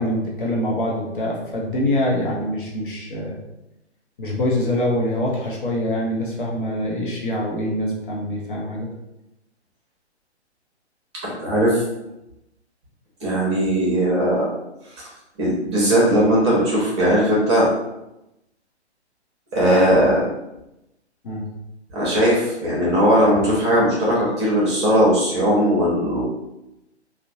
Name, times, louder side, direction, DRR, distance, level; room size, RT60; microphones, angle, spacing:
voice 1, 0.0-3.4 4.2-8.9 21.2-21.5, left 1 dB, 50° left, -3 dB, 0.7 m, -24 dB
voice 2, 11.2-11.8 13.2-14.5 15.4-17.7 19.5-20.2 21.9-26.3, equal, 25° right, -5 dB, 0.7 m, -18 dB
2.6 x 2.1 x 2.6 m, 0.91 s
figure-of-eight pair, 135°, 34 cm